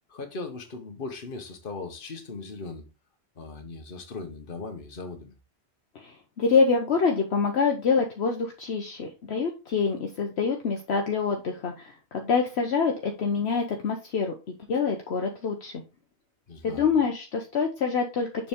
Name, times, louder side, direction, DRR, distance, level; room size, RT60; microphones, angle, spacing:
voice 1, 0.1-2.8 3.4-5.3 16.5-16.9, left 3 dB, 50° left, 1.4 m, -38 dB
voice 2, 6.0-14.3 14.7-15.7 16.6-18.5, left 5 dB, 65° left, 1.1 m, -26 dB
6.8 x 4.5 x 3.6 m
omnidirectional pair, 1.2 m